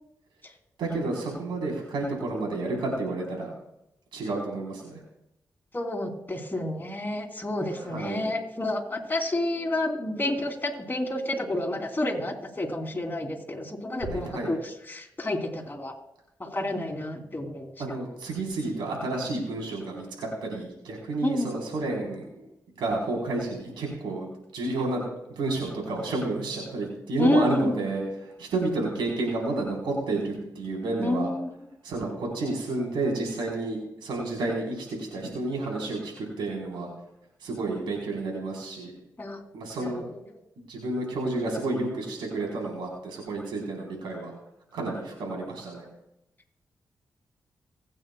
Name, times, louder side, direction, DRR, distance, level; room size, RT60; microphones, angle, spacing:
voice 1, 0.8-3.5 4.1-5.0 7.7-8.3 14.1-14.5 17.8-22.5 22.8-31.3 31.8-36.9 37.4-38.9 39.5-40.0 40.7-44.3 44.7-45.9, right 2 dB, 85° right, -1 dB, 3.9 m, -30 dB
voice 2, 5.7-15.9 16.4-17.7 21.2-21.5 27.2-27.8 31.0-31.5 39.2-39.4 39.8-40.0, left 1 dB, 25° left, 2 dB, 3.0 m, -29 dB
25.0 x 8.9 x 2.3 m, 0.84 s
supercardioid pair, 40°, 8 cm